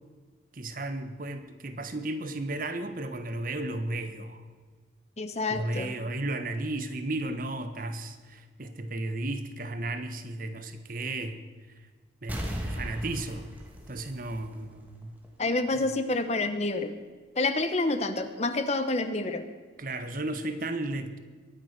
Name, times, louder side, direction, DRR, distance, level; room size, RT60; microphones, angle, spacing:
voice 1, 0.5-4.4 5.5-11.4 12.2-13.5 13.9-15.1 15.4-15.8 19.8-21.2, right 2 dB, 45° right, 8 dB, 1.3 m, -34 dB
voice 2, 5.2-6.0 15.4-17.0 17.4-19.4, left 2 dB, 35° left, 9 dB, 1.0 m, -28 dB
sound 1, 12.3-14.9 15.2-15.3, equal, 10° right, 1.9 m, -37 dB
22.5 x 9.6 x 6.0 m, 1.5 s
head